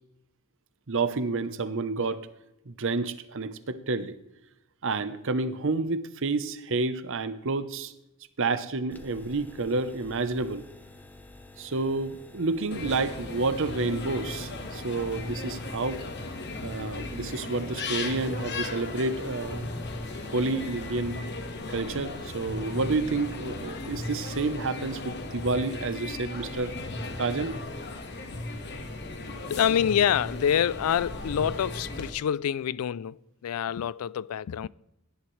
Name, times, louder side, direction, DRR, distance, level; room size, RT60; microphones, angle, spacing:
voice 1, 0.9-2.3 2.7-4.1 4.8-7.9 8.4-10.6 11.6-16.0 16.6-19.7 20.3-21.2 21.7-26.8 27.2-27.6, right 3 dB, 60° right, 0.8 m, -29 dB
sound 1, 8.9-20.9, left 2 dB, 10° left, 0.7 m, -50 dB
sound 2, 12.7-32.1, left 2 dB, 50° left, 1.4 m, -36 dB
voice 2, 29.5-34.7, left 9 dB, 75° left, 0.3 m, -26 dB
17.0 x 10.5 x 3.2 m
head